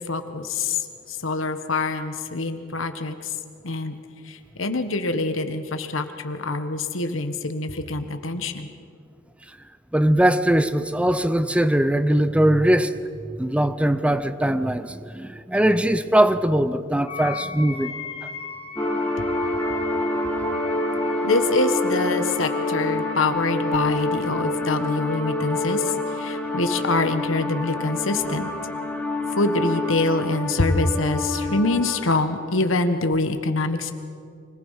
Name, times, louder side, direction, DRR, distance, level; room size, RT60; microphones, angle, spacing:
voice 1, 0.0-3.3 3.6-4.0 4.3-8.7 21.2-28.5 29.4-33.9, left 2 dB, 75° left, 1.4 m, -25 dB
voice 2, 9.9-13.0 13.3-17.9 18.2-18.3 21.0-21.1, right 1 dB, 5° right, 0.6 m, -21 dB
Wind instrument woodwind instrument, 17.0-23.4, left 5 dB, 30° left, 1.1 m, -37 dB
sound 1, 18.8-32.4, left 2 dB, 10° left, 2.2 m, -27 dB
25.0 x 19.0 x 5.7 m
head